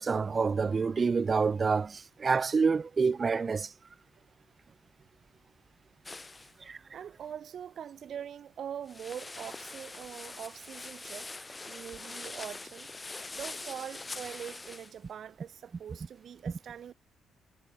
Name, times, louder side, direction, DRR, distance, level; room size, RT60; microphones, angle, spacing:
voice 1, 0.0-3.7 6.7-6.8, right 5 dB, 35° right, 1.1 m, -27 dB
sound 1, 6.1-6.6 8.9-14.9, left 3 dB, 20° left, 4.2 m, -43 dB
voice 2, 6.9-12.9 13.3-16.9, right 9 dB, 60° right, 1.8 m, -43 dB
cardioid pair, 90°, 0 cm